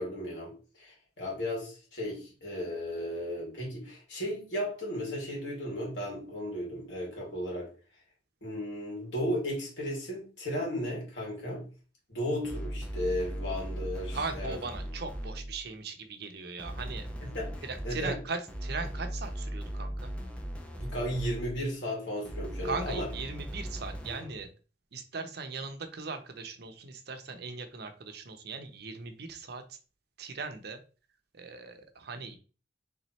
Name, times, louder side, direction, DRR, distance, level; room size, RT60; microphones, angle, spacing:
voice 1, 0.0-7.7 8.4-11.7 12.1-14.6 17.2-18.2 20.8-23.1, equal, 85° left, 2.2 m, -35 dB
sound 1, 12.4-15.7 16.6-21.7 22.3-24.5, equal, 5° left, 0.7 m, -38 dB
voice 2, 14.1-17.1 17.6-20.1 22.6-24.5 24.9-29.8 30.2-30.8 31.3-32.4, right 4 dB, 60° right, 0.7 m, -39 dB
3.6 x 3.1 x 4.1 m
head